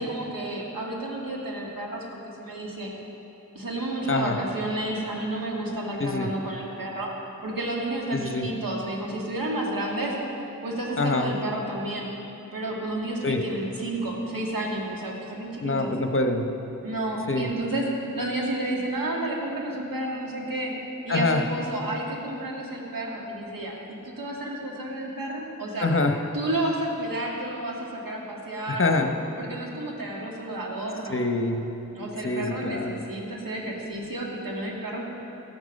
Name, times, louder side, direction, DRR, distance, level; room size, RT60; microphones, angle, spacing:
voice 1, 0.0-2.9 3.5-7.1 7.4-10.1 10.6-12.1 12.5-15.9 16.8-17.9 18.1-20.7 21.0-25.9 26.3-29.1 29.4-31.3 31.9-35.0, right 1 dB, 85° right, -2 dB, 2.2 m, -31 dB
voice 2, 6.0-6.3 8.1-8.5 11.0-11.3 13.2-13.4 15.6-16.5 17.3-17.5 21.1-21.4 25.8-26.2 28.7-29.1 31.1-31.7 32.2-33.0, left 3 dB, 40° left, 5 dB, 1.0 m, -25 dB
13.5 x 11.5 x 5.4 m, 3.0 s
wide cardioid pair, 70°, 33 cm